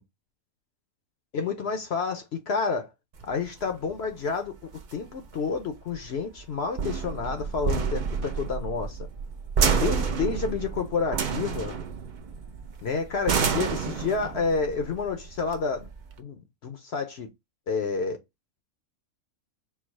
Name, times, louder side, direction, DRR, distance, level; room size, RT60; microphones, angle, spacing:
voice 1, 1.3-2.9 3.2-4.5 4.9-9.0 9.7-11.8 12.8-15.9 16.2-17.3 17.7-18.2, left 5 dB, 60° left, 0.8 m, -29 dB
sound 1, 3.2-16.2, right 6 dB, 55° right, 0.5 m, -30 dB
4.6 x 2.1 x 4.4 m
omnidirectional pair, 1.5 m